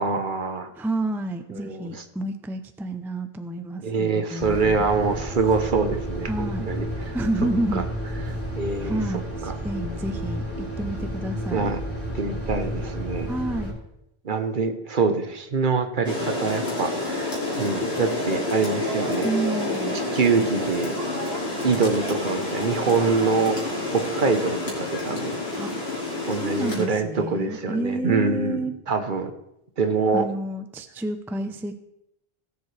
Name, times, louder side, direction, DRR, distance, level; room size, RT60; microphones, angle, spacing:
voice 1, 0.0-0.7 1.5-2.0 3.8-7.1 7.7-7.8 8.6-9.0 9.4-9.5 11.5-11.8 12.1-13.3 14.2-19.3 20.1-21.0 21.6-23.6 23.9-25.4 26.3-29.3 29.8-30.3, right 4 dB, 55° right, 8 dB, 1.0 m, -25 dB
voice 2, 0.7-4.8 6.3-6.7 7.1-7.8 8.8-11.7 13.3-13.7 19.2-20.0 25.6-25.7 26.3-28.7 30.1-31.8, right 1 dB, 5° right, 8 dB, 0.5 m, -29 dB
sound 1, 4.4-13.7, equal, 15° left, 3.2 m, -31 dB
Rain, 16.0-26.8, left 2 dB, 85° left, 2.9 m, -28 dB
17.5 x 7.2 x 3.3 m, 0.82 s
omnidirectional pair, 1.0 m